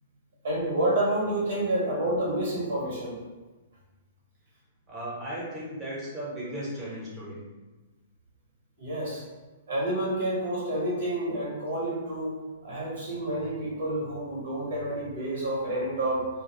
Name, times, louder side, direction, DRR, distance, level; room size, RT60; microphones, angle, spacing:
voice 1, 0.4-3.2 8.8-9.2 9.7-16.3, right 1 dB, 75° right, -5 dB, 1.2 m, -29 dB
voice 2, 4.9-7.4, right 1 dB, 15° right, -7 dB, 1.0 m, -36 dB
2.3 x 2.1 x 3.0 m, 1.2 s
hypercardioid pair, 150°, 0 cm